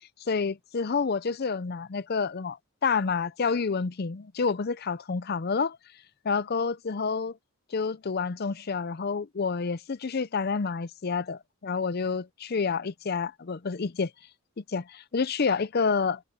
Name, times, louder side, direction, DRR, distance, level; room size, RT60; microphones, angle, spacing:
voice 1, 0.3-5.8 6.2-7.4 7.7-14.1 14.6-16.2, left 5 dB, 45° left, 0.5 m, -29 dB
head